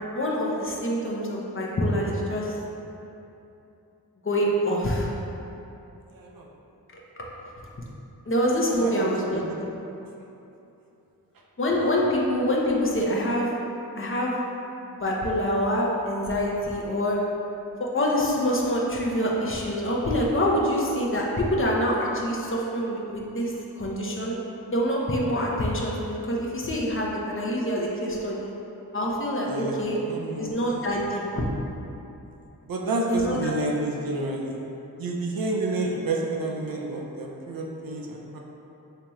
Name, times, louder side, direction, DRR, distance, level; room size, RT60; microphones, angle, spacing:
voice 1, 0.0-2.5 4.2-5.1 6.9-7.3 8.3-9.7 11.6-13.5 14.0-14.3 15.0-17.2 17.8-24.4 24.7-28.5 28.9-29.5 29.8-30.0 30.4-31.2 33.1-33.5, equal, 35° left, -3 dB, 0.6 m, -26 dB
voice 2, 6.1-6.5 8.7-9.5 29.5-30.8 32.6-34.6 35.0-38.4, right 2 dB, 65° right, -1 dB, 0.6 m, -30 dB
3.4 x 2.8 x 3.1 m, 2.9 s
cardioid pair, 45°, 37 cm